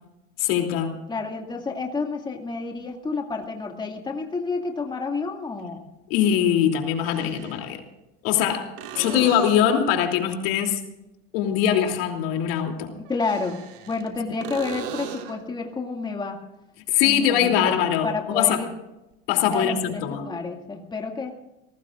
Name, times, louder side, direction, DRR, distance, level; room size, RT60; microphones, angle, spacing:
voice 1, 0.4-1.0 6.1-7.8 8.2-10.8 11.3-12.9 16.9-18.6 19.3-20.3, left 9 dB, 80° left, 3 dB, 3.2 m, -22 dB
voice 2, 1.1-5.8 8.9-9.3 13.0-13.6 13.9-16.4 17.0-17.8 18.0-18.7 19.5-21.3, left 4 dB, 15° left, 1 dB, 2.3 m, -30 dB
sound 1, 3.4-3.5 5.6-5.7 6.9-7.7 8.8-9.9 13.0-14.1 14.4-15.5 19.1-19.2, right 8 dB, 70° right, 3.0 m, -38 dB
29.5 x 18.5 x 2.5 m, 0.95 s
supercardioid pair, 135°, 29 cm